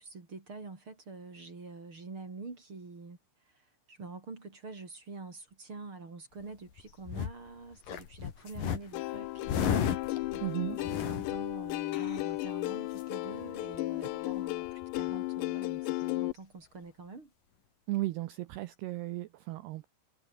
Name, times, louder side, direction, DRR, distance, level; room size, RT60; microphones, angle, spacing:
voice 1, 0.0-3.2 3.4-9.6 10.3-17.3, right 3 dB, 30° right, 4.0 m, -46 dB
sound 1, 6.5-7.5 7.8-12.5 12.9-13.0 13.3-13.8 14.0-14.1 14.3-15.1 16.0-16.1, left 8 dB, 50° left, 3.7 m, -35 dB
Plucked string instrument, 8.9-16.3, left 20 dB, 80° left, 2.5 m, -35 dB
voice 2, 10.4-10.8 17.9-19.9, right 17 dB, 90° right, 2.3 m, -35 dB
omnidirectional pair, 5.8 m